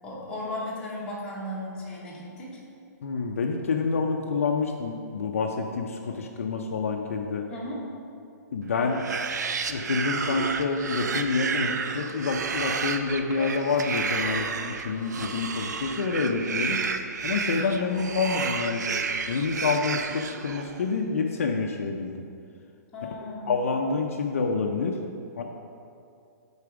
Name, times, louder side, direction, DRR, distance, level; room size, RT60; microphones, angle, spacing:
voice 1, 0.0-2.6 7.5-7.8 17.4-17.8 22.9-23.5, left 1 dB, 10° left, -7 dB, 0.9 m, -36 dB
voice 2, 3.0-7.4 8.5-9.0 9.7-16.8 17.2-18.8 19.3-22.2 23.5-25.0 25.4-25.5, left 4 dB, 50° left, 3 dB, 0.5 m, -27 dB
sound 1, 8.8-20.9, right 5 dB, 75° right, 0.5 m, -31 dB
8.5 x 4.1 x 4.8 m, 2.4 s
hypercardioid pair, 180°, 9 cm